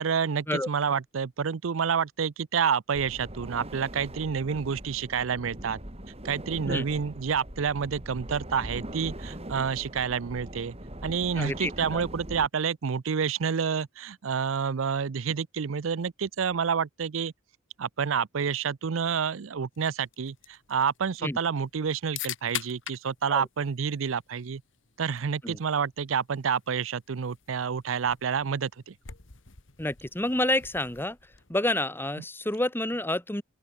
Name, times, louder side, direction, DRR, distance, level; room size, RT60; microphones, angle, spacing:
voice 1, 0.0-5.8 6.2-10.7 11.0-17.3 17.8-24.6 25.0-28.9, right 6 dB, 85° right, 0.5 m, -29 dB
sound 1, 2.9-12.5, right 1 dB, 30° right, 5.8 m, -41 dB
voice 2, 11.4-12.0 21.2-21.4 23.3-23.5 25.4-25.6 29.8-31.2 31.5-33.4, left 1 dB, 10° left, 2.2 m, -29 dB
sound 2, 19.7-31.7, left 11 dB, 70° left, 1.8 m, -45 dB
open air
head